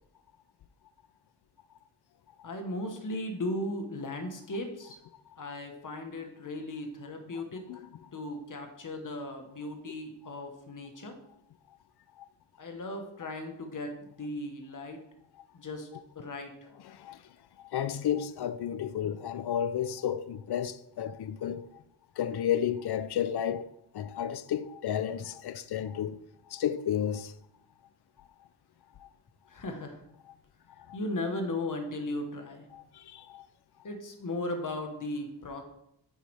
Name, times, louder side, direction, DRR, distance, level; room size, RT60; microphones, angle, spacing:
voice 1, 2.4-5.0 5.4-7.8 8.1-11.2 12.6-15.0 15.5-15.9 16.1-16.7 29.5-30.0 30.9-32.7 33.8-35.6, left 1 dB, 45° left, 1.2 m, -37 dB
voice 2, 16.9-17.2 17.6-21.8 22.2-23.7 23.9-26.2 26.5-27.3 29.0-29.1 30.8-31.0 32.7-33.5, left 9 dB, 65° left, 0.5 m, -32 dB
9.5 x 6.5 x 3.4 m
wide cardioid pair, 135°, 42 cm